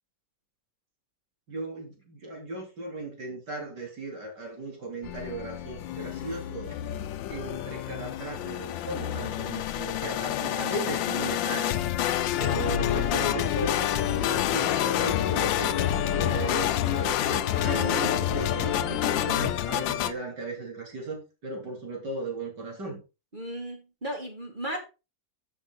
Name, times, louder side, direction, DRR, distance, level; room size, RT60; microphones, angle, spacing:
voice 1, 1.5-6.7 7.3-11.8 12.4-15.8 16.2-23.0, right 2 dB, 65° right, 1 dB, 4.3 m, -36 dB
sound 1, 5.0-20.1, left 12 dB, 90° left, 1.4 m, -29 dB
voice 2, 12.0-12.4 17.9-18.0 23.3-24.8, right 1 dB, 25° right, 1 dB, 2.4 m, -36 dB
sound 2, 12.3-19.5, left 8 dB, 60° left, 1.0 m, -31 dB
12.5 x 7.3 x 4.0 m, 0.29 s
omnidirectional pair, 2.0 m